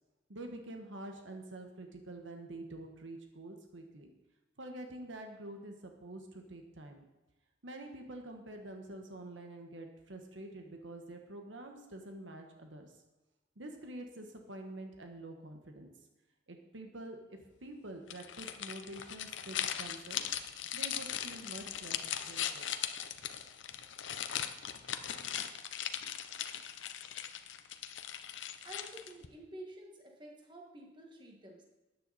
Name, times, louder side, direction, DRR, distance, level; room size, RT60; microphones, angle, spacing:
voice 1, 0.3-4.1 4.6-7.0 7.6-12.9 13.6-15.9 16.5-20.2 20.7-22.0 22.2-22.7, right 1 dB, 80° right, 4 dB, 1.5 m, -47 dB
sound 1, 18.1-29.3, left 10 dB, 75° left, 0.8 m, -39 dB
voice 2, 28.6-31.6, right 1 dB, 25° right, 0 dB, 1.9 m, -50 dB
13.5 x 9.4 x 4.2 m, 1.1 s
head